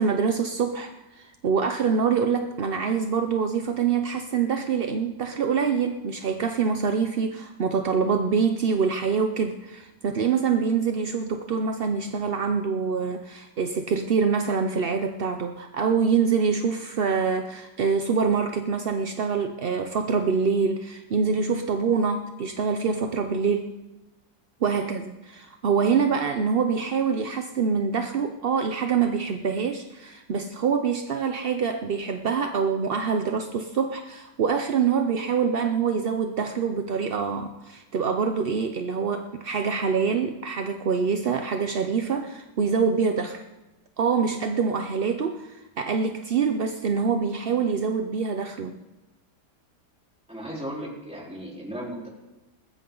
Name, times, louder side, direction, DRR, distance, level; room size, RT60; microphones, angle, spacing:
voice 1, 0.0-23.7 24.6-43.4 44.0-48.8, right 6 dB, 55° right, 6 dB, 0.6 m, -25 dB
voice 2, 50.3-52.1, equal, 5° right, -4 dB, 4.0 m, -36 dB
20.0 x 13.5 x 3.9 m, 1.1 s
omnidirectional pair, 1.8 m